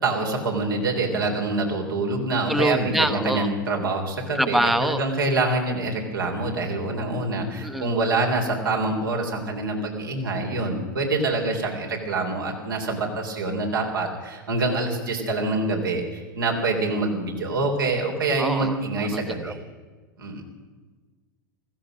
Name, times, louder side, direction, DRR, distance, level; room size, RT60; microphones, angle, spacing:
voice 1, 0.0-19.6 20.2-20.4, right 2 dB, 85° right, 0 dB, 3.6 m, -26 dB
voice 2, 2.5-3.5 4.4-5.0 7.6-7.9 18.4-18.7 19.4-19.5, right 1 dB, ahead, 9 dB, 0.9 m, -24 dB
16.0 x 14.5 x 6.2 m, 1.4 s
hypercardioid pair, 90°, 11 cm